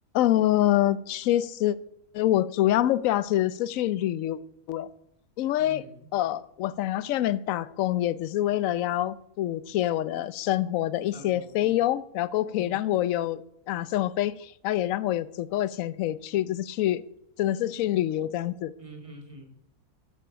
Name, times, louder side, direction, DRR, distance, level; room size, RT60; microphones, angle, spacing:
voice 1, 0.1-1.8 2.1-4.4 4.7-4.9 5.4-5.8 6.1-13.4 13.7-17.0 17.4-18.7, left 13 dB, 70° left, 18 dB, 0.9 m, -26 dB
voice 2, 5.6-6.1 11.1-11.8 12.6-12.8 18.8-19.5, right 1 dB, 20° right, 3 dB, 2.1 m, -46 dB
11.5 x 9.1 x 6.2 m, 0.75 s
omnidirectional pair, 1.6 m